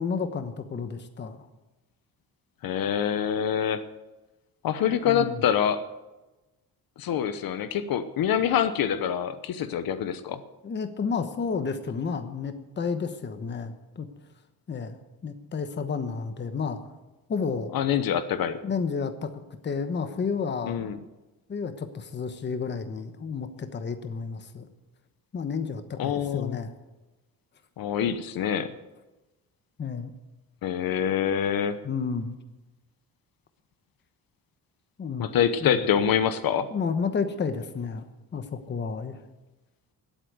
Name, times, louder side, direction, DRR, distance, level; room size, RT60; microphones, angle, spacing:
voice 1, 0.0-1.5 5.0-5.4 10.6-14.1 14.7-15.0 15.2-16.8 17.3-17.7 18.3-19.3 19.6-20.8 21.5-24.7 25.3-26.7 29.8-30.1 31.8-32.4 35.0-35.3 35.6-35.8 36.7-38.1 38.3-39.2, left 5 dB, 30° left, 9 dB, 1.1 m, -31 dB
voice 2, 2.6-3.8 4.6-5.8 7.0-10.4 17.7-18.6 20.6-21.0 26.0-26.6 27.8-28.7 30.6-31.8 35.2-36.7, left 9 dB, 70° left, 12 dB, 1.0 m, -25 dB
17.5 x 8.4 x 7.8 m, 1.1 s
cardioid pair, 180°, 37 cm